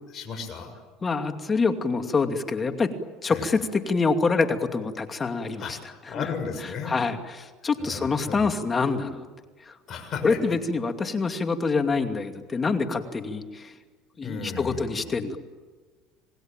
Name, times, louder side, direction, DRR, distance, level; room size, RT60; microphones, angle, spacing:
voice 1, 0.1-0.7 3.3-3.5 5.6-7.0 7.8-8.5 9.9-10.4 14.2-15.1, left 5 dB, 45° left, 5 dB, 7.2 m, -35 dB
voice 2, 1.0-2.9 3.2-5.8 6.1-6.3 6.8-9.3 9.7-9.8 10.2-13.7 14.2-15.4, left 4 dB, 25° left, 6 dB, 2.6 m, -26 dB
27.5 x 20.0 x 9.1 m, 1.4 s
supercardioid pair, 100°, 0 cm